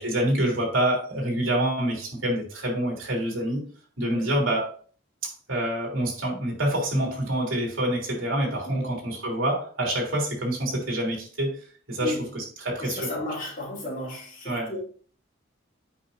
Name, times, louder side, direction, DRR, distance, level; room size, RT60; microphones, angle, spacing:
voice 1, 0.0-3.6 4.0-4.7 5.2-13.1 14.4-14.7, right 1 dB, 80° right, 3.3 m, -27 dB
voice 2, 8.6-9.0 12.0-12.3 12.8-14.8, left 1 dB, 40° left, 2.9 m, -34 dB
8.5 x 5.5 x 2.7 m
head